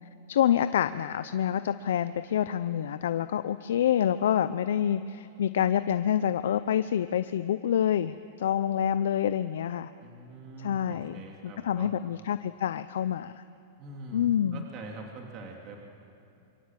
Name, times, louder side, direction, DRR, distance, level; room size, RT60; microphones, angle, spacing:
voice 1, 0.3-9.9 10.6-13.4 14.1-14.6, left 10 dB, 80° left, 12 dB, 0.6 m, -27 dB
voice 2, 10.0-11.9 13.8-15.8, right 3 dB, 40° right, 1 dB, 2.9 m, -44 dB
26.0 x 23.5 x 7.5 m, 2.7 s
hypercardioid pair, 130°, 0 cm